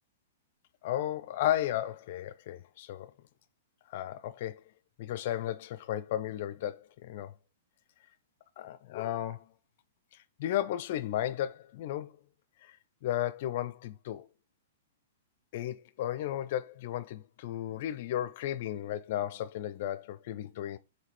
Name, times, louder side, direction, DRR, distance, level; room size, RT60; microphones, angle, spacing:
voice 1, 0.8-3.1 3.9-4.6 5.0-7.3 8.6-9.5 10.4-12.2 12.6-12.8 13.0-14.3 15.5-20.8, left 12 dB, 50° left, 0.4 m, -34 dB
4.8 x 3.2 x 3.3 m
figure-of-eight pair, 110°, 0 cm